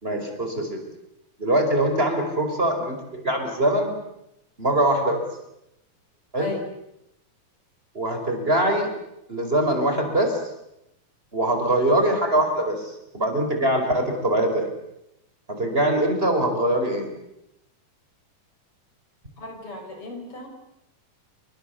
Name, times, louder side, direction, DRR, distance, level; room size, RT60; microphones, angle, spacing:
voice 1, 0.0-0.8 1.4-3.9 4.6-5.2 6.3-6.5 7.9-8.9 9.3-10.4 11.3-14.7 15.5-17.1, right 1 dB, 15° right, 5 dB, 4.8 m, -23 dB
voice 2, 6.3-6.7 19.4-20.5, left 2 dB, 35° left, 4 dB, 5.9 m, -35 dB
29.5 x 24.0 x 7.0 m, 0.83 s
omnidirectional pair, 4.2 m